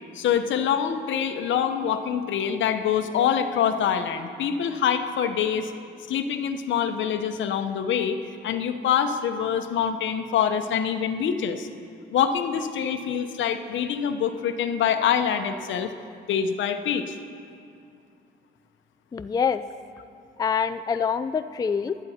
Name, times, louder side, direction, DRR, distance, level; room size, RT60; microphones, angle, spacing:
voice 1, 0.1-5.7 6.1-8.2 8.4-11.7 12.1-15.9 16.3-17.2, left 8 dB, 70° left, 8 dB, 0.8 m, -25 dB
voice 2, 19.1-19.6 20.4-22.0, left 6 dB, 20° left, 11 dB, 0.3 m, -25 dB
16.0 x 11.0 x 4.3 m, 2.5 s
cardioid pair, 90°, 20 cm